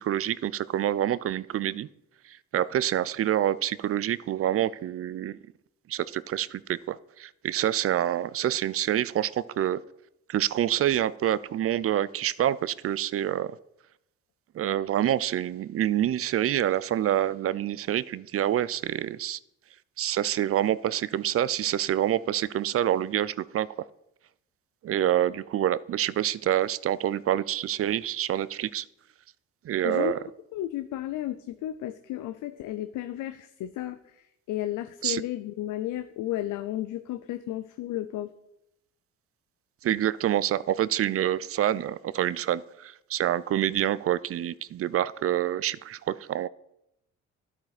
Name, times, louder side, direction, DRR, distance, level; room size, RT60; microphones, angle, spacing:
voice 1, 0.0-1.9 2.3-5.4 5.9-9.8 10.3-13.6 14.5-19.4 20.0-23.7 24.8-28.9 29.6-30.2 35.0-35.2 39.8-46.5, right 11 dB, 50° right, 19 dB, 0.4 m, -27 dB
voice 2, 30.5-34.0 34.5-38.3, left 13 dB, 85° left, 11 dB, 0.5 m, -33 dB
11.5 x 8.8 x 4.1 m, 0.83 s
cardioid pair, 90°, 30 cm